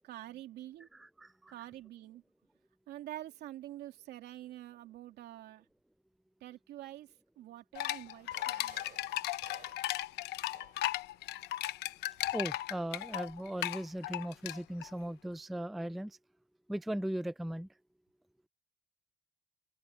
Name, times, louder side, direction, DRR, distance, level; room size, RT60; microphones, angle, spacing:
voice 1, 0.0-0.9 1.5-2.2 2.9-5.6 6.4-8.8, right 14 dB, 75° right, 2.8 m, -47 dB
voice 2, 0.9-1.5 12.3-16.2 16.7-17.7, right 1 dB, ahead, 0.3 m, -38 dB
sound 1, 7.7-14.9, left 15 dB, 80° left, 1.0 m, -36 dB
sound 2, 8.1-11.0 12.1-13.2, right 9 dB, 50° right, 7.5 m, -59 dB
open air
cardioid pair, 110°, 17 cm